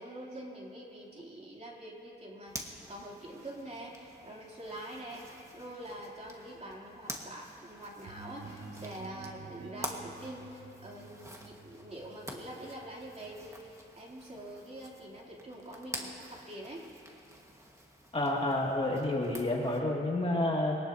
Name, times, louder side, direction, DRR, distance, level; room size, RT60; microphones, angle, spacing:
voice 1, 0.0-16.9 18.4-18.5, right 1 dB, 35° right, -4 dB, 3.2 m, -45 dB
Zipper (clothing), 2.5-19.8, right 1 dB, 15° right, 1.6 m, -48 dB
sound 1, 8.0-13.7, right 4 dB, 75° right, 1.9 m, -50 dB
voice 2, 18.1-20.8, left 1 dB, 30° left, -3 dB, 2.4 m, -29 dB
24.0 x 18.5 x 2.9 m, 2.7 s
wide cardioid pair, 100°, 20 cm